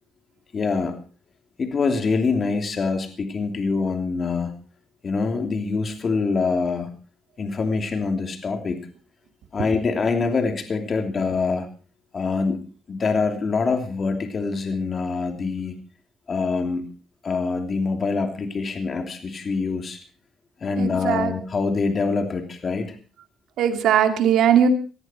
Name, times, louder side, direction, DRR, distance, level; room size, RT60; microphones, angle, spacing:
voice 1, 0.5-1.0 1.6-4.5 5.0-6.9 7.4-8.8 9.5-11.7 12.1-12.6 12.9-15.7 16.3-16.9 17.2-20.0 20.6-23.0, left 4 dB, 45° left, 6 dB, 3.0 m, -25 dB
voice 2, 20.8-21.3 23.6-24.7, right 9 dB, 80° right, 7 dB, 2.4 m, -19 dB
19.0 x 14.5 x 4.4 m, 0.37 s
cardioid pair, 90°, 0 cm